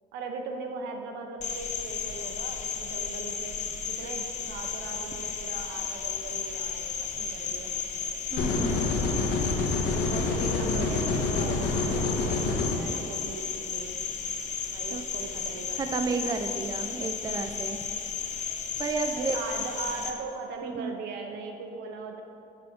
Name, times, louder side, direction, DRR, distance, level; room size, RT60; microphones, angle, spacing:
voice 1, 0.1-7.7 9.9-14.0 14.7-16.2 19.2-22.2, right 4 dB, 85° right, 4 dB, 0.8 m, -39 dB
Cricket, 1.4-20.1, left 6 dB, 45° left, 0.7 m, -34 dB
voice 2, 8.3-9.0 14.9-15.0 15.8-17.8 18.8-19.4 20.6-20.9, right 4 dB, 25° right, 8 dB, 0.4 m, -32 dB
sound 1, 8.4-12.8, left 3 dB, 80° left, 0.8 m, -27 dB
7.3 x 4.2 x 5.9 m, 2.8 s
cardioid pair, 110°, 17 cm